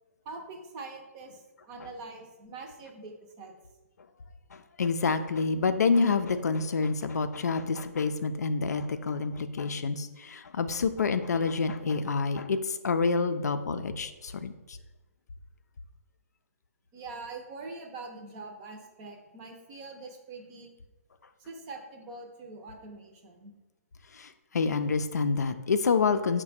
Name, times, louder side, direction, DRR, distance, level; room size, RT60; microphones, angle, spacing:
voice 1, 0.2-3.5 16.9-20.7 21.4-23.5, right 3 dB, 25° right, 3 dB, 0.6 m, -44 dB
voice 2, 4.5-14.8 24.1-26.4, left 4 dB, 90° left, 10 dB, 0.4 m, -28 dB
4.8 x 2.2 x 4.2 m, 1.1 s
hypercardioid pair, 150°, 9 cm